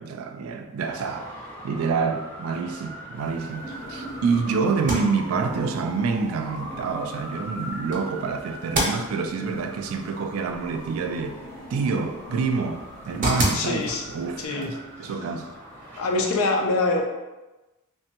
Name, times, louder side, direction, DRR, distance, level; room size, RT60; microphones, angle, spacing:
voice 1, 0.0-11.4 11.7-13.8 14.1-15.5, right 5 dB, 85° right, 0.3 m, -27 dB
Traffic noise roadway noise, 0.8-16.3, equal, 10° left, 0.5 m, -41 dB
sound 1, 3.2-14.5, equal, 45° left, 0.6 m, -44 dB
sound 2, 4.7-16.4, right 1 dB, 40° right, 0.6 m, -34 dB
voice 2, 13.5-14.0 14.4-14.7 15.0-15.1 16.0-17.0, left 3 dB, 90° left, 0.5 m, -24 dB
3.1 x 2.2 x 2.9 m
head